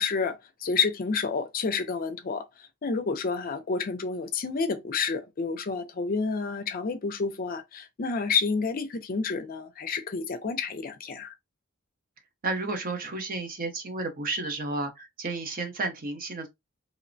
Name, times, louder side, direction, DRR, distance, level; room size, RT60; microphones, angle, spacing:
voice 1, 0.0-11.3, left 5 dB, 45° left, 0.4 m, -29 dB
voice 2, 12.4-16.5, right 3 dB, 45° right, 0.6 m, -32 dB
3.0 x 2.1 x 2.5 m
head